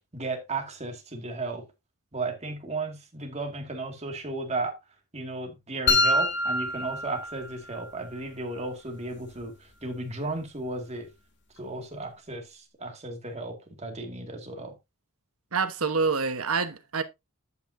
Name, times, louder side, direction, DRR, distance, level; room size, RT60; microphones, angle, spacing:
voice 1, 0.1-1.7 2.1-4.8 5.1-9.5 9.8-11.1 11.6-14.7, right 3 dB, 30° right, 2.2 m, -34 dB
sound 1, 5.9-7.9, left 2 dB, 55° left, 1.8 m, -25 dB
voice 2, 15.5-17.0, right 4 dB, 70° right, 1.2 m, -26 dB
11.0 x 8.2 x 2.7 m
head